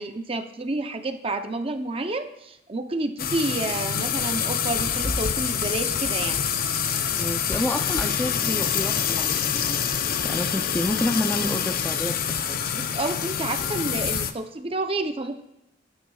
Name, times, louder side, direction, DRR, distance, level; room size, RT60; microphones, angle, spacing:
voice 1, 0.0-6.4 12.7-15.4, right 2 dB, 30° right, 7 dB, 0.7 m, -29 dB
sound 1, 3.2-14.3, left 7 dB, 50° left, 0.6 m, -26 dB
voice 2, 7.2-9.9 10.2-12.6, left 1 dB, 10° left, 5 dB, 0.5 m, -29 dB
18.0 x 9.6 x 2.4 m, 0.87 s
head